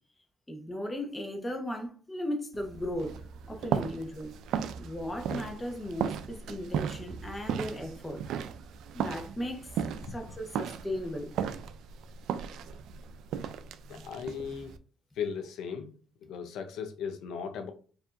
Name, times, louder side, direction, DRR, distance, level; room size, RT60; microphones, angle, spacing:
voice 1, 0.5-3.2 3.4-4.3 4.8-8.2 8.9-9.7 10.1-11.3, left 1 dB, 20° left, 1.0 m, -36 dB
sound 1, 2.5-14.8, right 8 dB, 80° right, 0.3 m, -36 dB
voice 2, 13.9-14.7 15.2-15.9 16.2-17.7, left 6 dB, 85° left, 0.6 m, -37 dB
4.6 x 2.7 x 2.5 m
cardioid pair, 90°, 0 cm